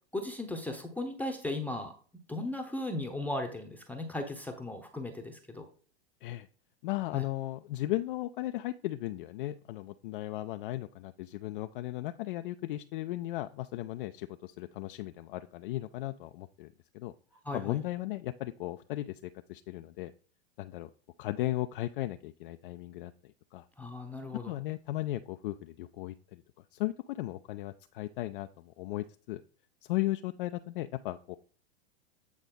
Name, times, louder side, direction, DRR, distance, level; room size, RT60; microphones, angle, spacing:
voice 1, 0.1-1.9 2.3-5.7 7.1-7.2 17.4-17.8 23.8-24.5, left 2 dB, 5° left, 4 dB, 0.8 m, -36 dB
voice 2, 6.8-17.1 17.5-19.2 19.5-20.1 20.6-20.9 21.2-23.1 23.5-23.6 24.5-26.4 26.7-29.4 29.9-31.4, left 16 dB, 55° left, 8 dB, 0.4 m, -36 dB
8.4 x 3.9 x 3.9 m, 0.42 s
hypercardioid pair, 100°, 33 cm